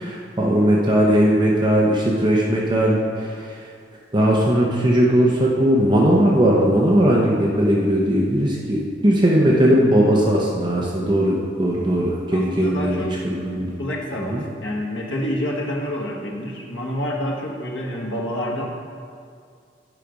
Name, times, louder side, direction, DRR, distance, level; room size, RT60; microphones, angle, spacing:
voice 1, 0.0-3.6 4.1-13.0 13.2-13.8 14.3-14.4, equal, 25° right, -4 dB, 0.8 m, -18 dB
voice 2, 12.3-13.2 13.5-18.7, left 1 dB, 90° left, -2 dB, 1.4 m, -28 dB
9.9 x 5.0 x 5.1 m, 2.2 s
head